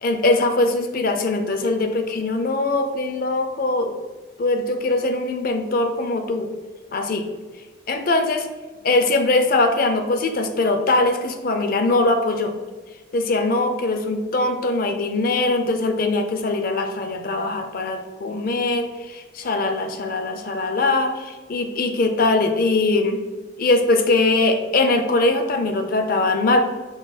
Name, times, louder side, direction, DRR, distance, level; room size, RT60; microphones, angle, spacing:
voice 1, 0.0-3.9 4.4-6.5 6.9-7.2 7.9-8.5 8.8-12.5 13.1-23.2 23.6-26.7, left 2 dB, 50° left, 6 dB, 0.5 m, -21 dB
5.6 x 2.2 x 4.1 m, 1.3 s
head